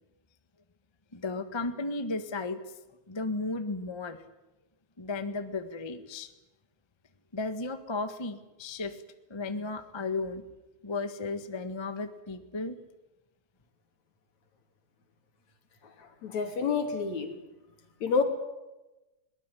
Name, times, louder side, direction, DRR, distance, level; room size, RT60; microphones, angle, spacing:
voice 1, 1.1-2.6 3.1-4.2 5.0-6.3 7.3-9.0 9.3-10.4 10.8-12.7, left 3 dB, 40° left, 9 dB, 0.4 m, -34 dB
voice 2, 16.2-17.3 18.0-18.2, left 5 dB, 65° left, 6 dB, 4.1 m, -28 dB
22.0 x 19.5 x 9.9 m, 1.0 s
omnidirectional pair, 3.5 m